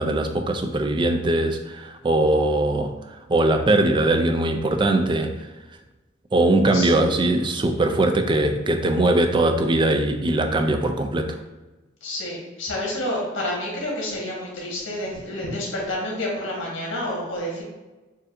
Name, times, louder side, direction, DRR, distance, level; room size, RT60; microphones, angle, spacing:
voice 1, 0.0-2.9 3.3-5.3 6.3-11.4, right 2 dB, 25° right, 5 dB, 0.3 m, -21 dB
voice 2, 12.0-17.6, left 1 dB, 80° left, -3 dB, 1.5 m, -29 dB
6.5 x 2.6 x 2.6 m, 1.1 s
head